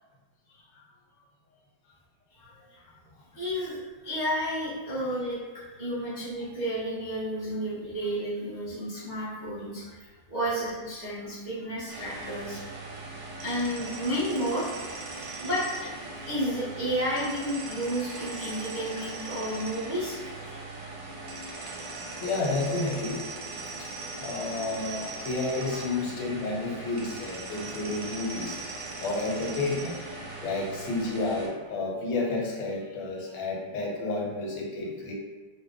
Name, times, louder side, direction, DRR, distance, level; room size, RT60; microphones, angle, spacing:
voice 1, 3.3-3.8 4.0-5.4 5.8-10.0 10.3-12.7 13.4-20.6 21.4-21.7, equal, 20° right, -10 dB, 0.5 m, -32 dB
sound 1, 11.9-31.5, right 3 dB, 75° right, 1.2 m, -39 dB
voice 2, 21.7-23.2 24.2-28.6 29.0-30.0 30.4-35.1, left 3 dB, 85° left, -2 dB, 1.5 m, -31 dB
3.3 x 2.1 x 3.7 m, 1.3 s
omnidirectional pair, 2.1 m